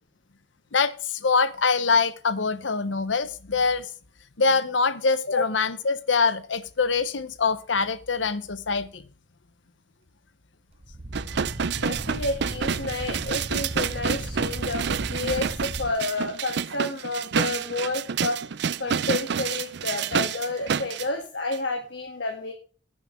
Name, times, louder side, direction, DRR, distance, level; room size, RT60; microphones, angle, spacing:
voice 1, 0.7-3.9 4.4-9.0, left 4 dB, 90° left, 0.9 m, -24 dB
sound 1, 10.7-15.9, right 1 dB, 35° right, 1.3 m, -36 dB
sound 2, 11.1-21.1 21.5-21.6, right 7 dB, 65° right, 0.5 m, -29 dB
voice 2, 11.6-18.4 18.8-22.5, left 2 dB, 70° left, 1.8 m, -30 dB
9.7 x 7.1 x 7.4 m
head